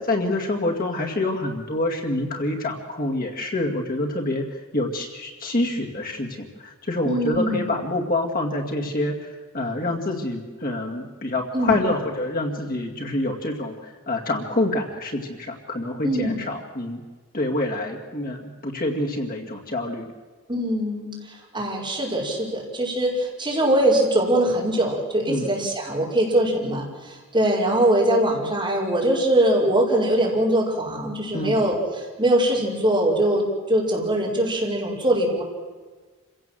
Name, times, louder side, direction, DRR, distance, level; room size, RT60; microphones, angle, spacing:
voice 1, 0.1-17.0 17.3-20.1 25.3-25.5 31.3-31.5, left 2 dB, 40° left, 1 dB, 2.3 m, -27 dB
voice 2, 7.0-7.7 11.5-11.7 16.0-16.4 20.5-21.1 21.5-35.4, right 1 dB, 20° right, -3 dB, 5.8 m, -22 dB
28.0 x 16.5 x 7.8 m, 1.4 s
head